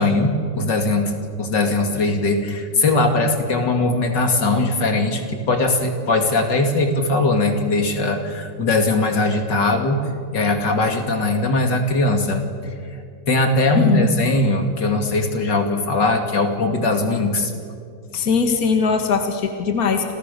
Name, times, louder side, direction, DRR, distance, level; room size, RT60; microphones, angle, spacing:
voice 1, 0.0-10.0 10.3-12.4 13.3-17.5, left 2 dB, 75° left, 5 dB, 3.1 m, -20 dB
voice 2, 13.7-14.1 18.1-20.1, left 5 dB, 55° left, 5 dB, 2.4 m, -20 dB
29.5 x 27.5 x 6.9 m, 2.2 s
omnidirectional pair, 1.9 m